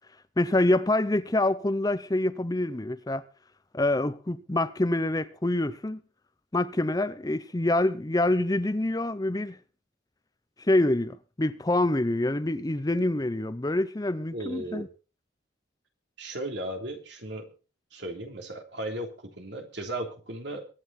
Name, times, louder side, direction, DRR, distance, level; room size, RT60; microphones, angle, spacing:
voice 1, 0.4-3.2 3.7-6.0 6.5-9.6 10.6-14.9, left 1 dB, 20° left, 0.6 m, -26 dB
voice 2, 14.3-14.9 16.2-17.5 17.9-20.7, right 1 dB, 65° right, 3.4 m, -36 dB
23.5 x 9.4 x 4.2 m
head